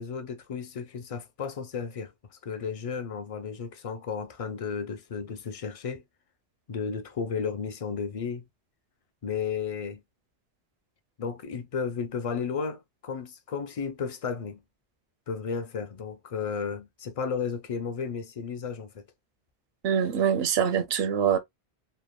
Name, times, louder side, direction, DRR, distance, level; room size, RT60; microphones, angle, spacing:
voice 1, 0.0-6.0 6.7-8.4 9.2-10.0 11.2-14.6 15.3-19.0, left 6 dB, 50° left, 0.4 m, -33 dB
voice 2, 19.8-21.4, right 8 dB, 70° right, 0.8 m, -24 dB
3.2 x 2.1 x 2.2 m
omnidirectional pair, 1.1 m